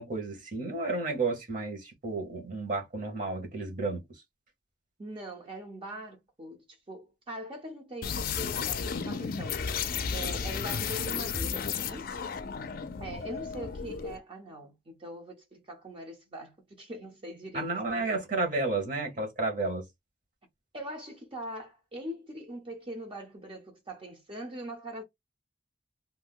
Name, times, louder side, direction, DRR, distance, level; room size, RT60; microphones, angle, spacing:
voice 1, 0.0-4.2 17.5-19.9, right 3 dB, 50° right, 1.2 m, -32 dB
voice 2, 5.0-9.6 10.1-12.1 13.0-17.6 17.9-18.2 20.7-25.0, equal, 30° right, 0.7 m, -42 dB
sound 1, 8.0-14.2, left 6 dB, 55° left, 0.4 m, -33 dB
2.7 x 2.2 x 3.5 m
head